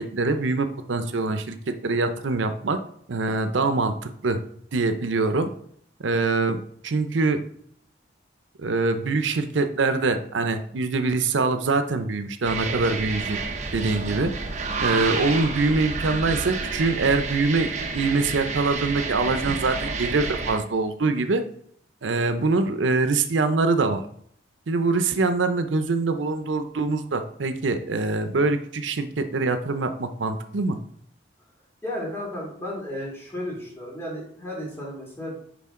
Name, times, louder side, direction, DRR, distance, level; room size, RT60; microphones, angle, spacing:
voice 1, 0.0-2.8 3.1-4.4 4.7-5.5 6.0-6.6 6.8-7.4 8.6-13.4 13.7-14.3 14.8-21.4 22.0-24.0 24.7-30.8, right 3 dB, 90° right, 9 dB, 0.6 m, -24 dB
sound 1, 12.4-20.6, right 4 dB, 40° right, 0.9 m, -30 dB
voice 2, 31.8-35.4, left 1 dB, 15° left, -4 dB, 2.5 m, -33 dB
10.0 x 3.7 x 3.7 m, 0.65 s
head